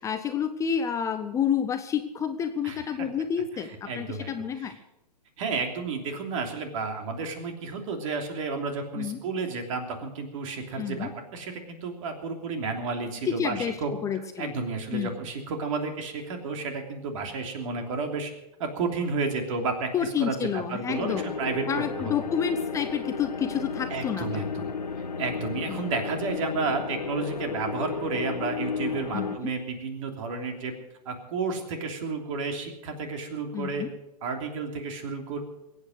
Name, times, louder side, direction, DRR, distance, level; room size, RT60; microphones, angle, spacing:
voice 1, 0.0-4.8 9.0-9.2 10.8-11.1 13.2-13.8 14.0-14.5 14.9-15.1 19.9-21.3 21.7-24.7 25.7-25.8 29.1-29.3 33.5-33.9, left 8 dB, 15° left, 8 dB, 0.6 m, -29 dB
voice 2, 2.6-3.0 3.6-4.3 4.6-4.7 5.4-13.9 14.4-18.3 18.6-22.1 23.9-24.7 25.2-30.7 31.0-33.8 34.2-35.4, right 4 dB, 50° right, 4 dB, 3.1 m, -32 dB
sound 1, 20.9-29.4, left 5 dB, 90° left, 1.4 m, -33 dB
21.5 x 8.9 x 6.5 m, 0.91 s
hypercardioid pair, 130°, 21 cm